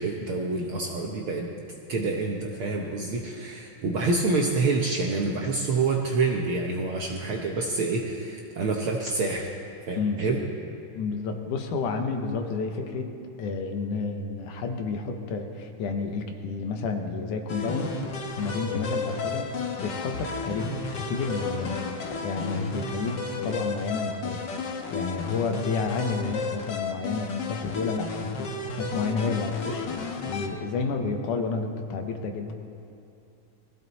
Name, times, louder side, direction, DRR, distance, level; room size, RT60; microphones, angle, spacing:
voice 1, 0.0-1.5 1.9-9.5 9.9-10.4, right 3 dB, 65° right, 0 dB, 1.3 m, -27 dB
voice 2, 11.0-13.1 13.4-18.0 18.3-19.5 19.8-21.8 22.2-32.5, left 4 dB, 85° left, 5 dB, 2.6 m, -30 dB
sound 1, 17.5-30.5, left 4 dB, 55° left, 1.3 m, -33 dB
20.5 x 15.5 x 4.1 m, 2.6 s
omnidirectional pair, 3.5 m